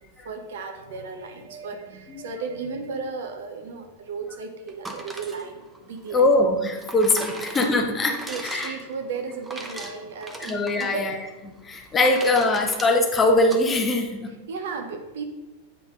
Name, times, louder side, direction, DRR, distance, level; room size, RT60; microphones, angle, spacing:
voice 1, 0.0-6.2 7.3-7.4 8.1-11.1 12.1-12.2 14.5-15.2, right 4 dB, 60° right, 5 dB, 0.7 m, -35 dB
sound 1, 4.7-13.6, right 2 dB, 10° right, 0.8 m, -39 dB
voice 2, 6.1-8.2 8.4-8.7 10.5-11.1 11.6-14.3, left 2 dB, 20° left, 3 dB, 0.9 m, -21 dB
8.1 x 3.5 x 3.6 m, 1.1 s
figure-of-eight pair, 90°, 0 cm